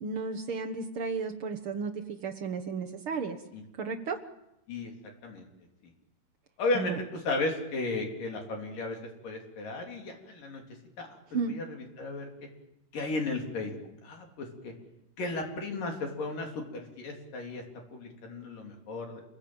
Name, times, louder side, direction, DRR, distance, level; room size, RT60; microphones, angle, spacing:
voice 1, 0.0-3.4 3.7-4.2 6.7-7.0 11.3-11.5, right 5 dB, 90° right, 4 dB, 1.1 m, -33 dB
voice 2, 6.6-9.0 9.2-10.6 11.0-11.6 12.0-12.3 12.9-13.8 14.0-14.7 15.2-17.6 17.9-19.2, left 3 dB, 60° left, 2 dB, 5.2 m, -34 dB
28.5 x 21.5 x 8.9 m, 0.88 s
omnidirectional pair, 4.5 m